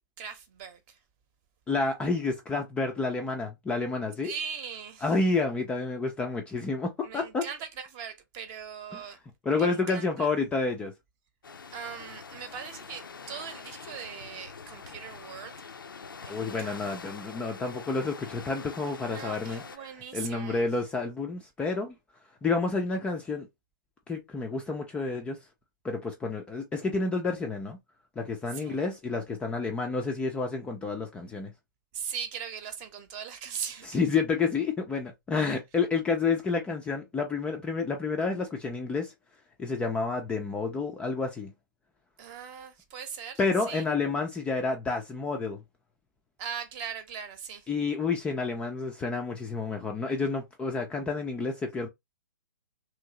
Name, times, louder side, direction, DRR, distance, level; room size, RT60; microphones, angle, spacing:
voice 1, 0.2-1.0 4.2-5.1 7.0-9.2 9.5-10.3 11.7-15.7 16.2-16.9 19.0-20.7 28.5-28.8 31.9-34.0 42.2-43.8 46.4-47.7, right 7 dB, 30° right, 0.8 m, -40 dB
voice 2, 1.7-4.3 5.0-7.5 8.9-9.0 9.4-10.9 16.3-22.0 22.4-23.5 24.1-25.4 25.8-27.8 28.2-31.5 33.8-39.1 39.6-41.5 43.4-45.6 47.7-51.9, left 4 dB, 10° left, 0.3 m, -29 dB
sound 1, 11.4-19.8, left 5 dB, 80° left, 0.4 m, -44 dB
3.0 x 2.6 x 2.8 m
figure-of-eight pair, 120°, 11 cm